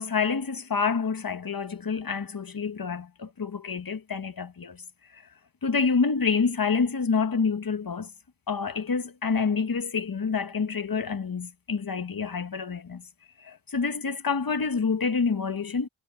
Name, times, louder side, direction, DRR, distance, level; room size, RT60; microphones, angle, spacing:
voice 1, 0.0-4.8 5.1-5.3 5.6-8.1 8.5-13.0 13.4-15.9, left 5 dB, 45° left, 1.3 m, -27 dB
cardioid pair, 45°, 48 cm